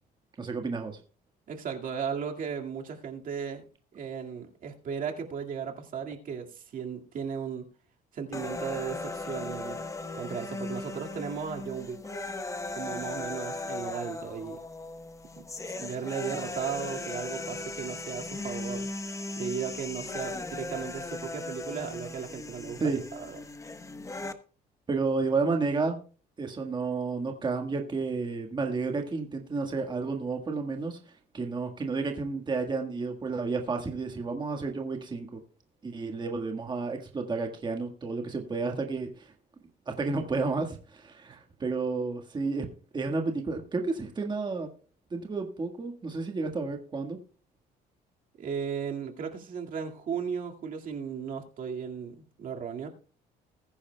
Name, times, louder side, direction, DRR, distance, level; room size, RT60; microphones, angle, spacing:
voice 1, 0.4-1.0 22.8-23.0 24.9-26.0 26.4-35.4 35.8-39.3 39.9-42.7 42.9-44.7 45.1-47.2, right 4 dB, 25° right, 1.6 m, -31 dB
voice 2, 1.5-3.6 3.9-7.7 8.1-9.8 10.1-12.0 12.7-14.6 15.4-18.9 19.4-23.5 48.4-52.9, right 7 dB, 55° right, 2.1 m, -36 dB
sound 1, 8.3-24.3, left 2 dB, 20° left, 1.1 m, -37 dB
20.5 x 10.0 x 2.3 m
cardioid pair, 110°, 17 cm